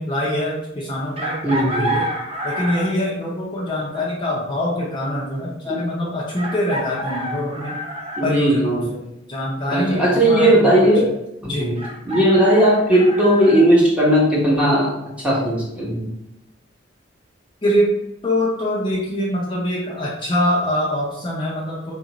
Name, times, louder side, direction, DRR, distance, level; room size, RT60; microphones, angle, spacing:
voice 1, 0.0-2.1 2.4-7.8 8.2-9.0 9.3-10.9 11.5-11.8 17.6-17.9 18.2-21.9, left 1 dB, 25° left, -5 dB, 0.6 m, -24 dB
Chicken rooster, 1.2-3.1 4.8-4.9 6.4-8.3 11.8-13.6, right 1 dB, 30° right, 0.5 m, -28 dB
voice 2, 1.4-2.0 5.7-5.8 8.2-8.8 9.7-11.1 11.4-14.9 15.2-16.1, right 1 dB, 5° right, -5 dB, 1.0 m, -17 dB
4.1 x 2.5 x 2.9 m, 0.85 s
head